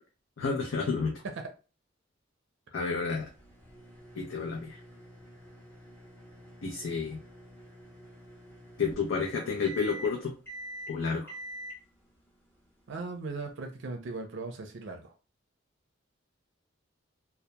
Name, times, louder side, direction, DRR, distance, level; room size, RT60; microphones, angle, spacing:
voice 1, 0.4-1.2 2.7-3.3 4.1-4.8 6.6-7.2 8.8-10.3 10.9-11.3, left 5 dB, 85° left, -1 dB, 0.5 m, -30 dB
sound 1, 3.2-13.5, equal, 10° left, 0.9 m, -47 dB
voice 2, 12.9-15.1, right 3 dB, 65° right, 5 dB, 0.5 m, -38 dB
2.2 x 2.1 x 2.8 m, 0.34 s
head